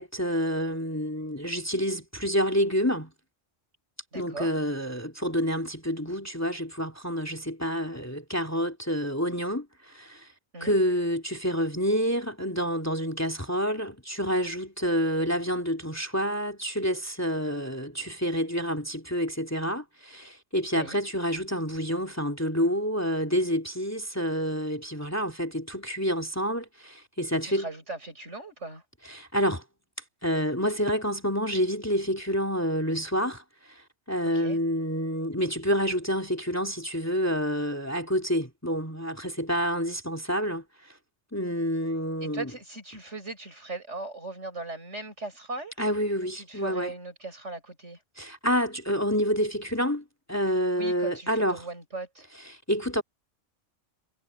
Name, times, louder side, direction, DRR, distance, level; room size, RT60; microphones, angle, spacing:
voice 1, 0.0-3.1 4.1-10.3 10.6-27.7 29.1-29.6 30.2-33.8 34.1-40.6 41.3-42.5 45.8-46.9 48.2-51.6 52.7-53.0, equal, 10° left, 2.7 m, -28 dB
voice 2, 4.1-4.5 10.5-10.8 20.7-21.0 27.4-28.8 34.3-34.6 42.2-45.7 46.3-48.0 50.7-52.3, right 2 dB, 65° right, 6.2 m, -39 dB
omnidirectional pair, 1.3 m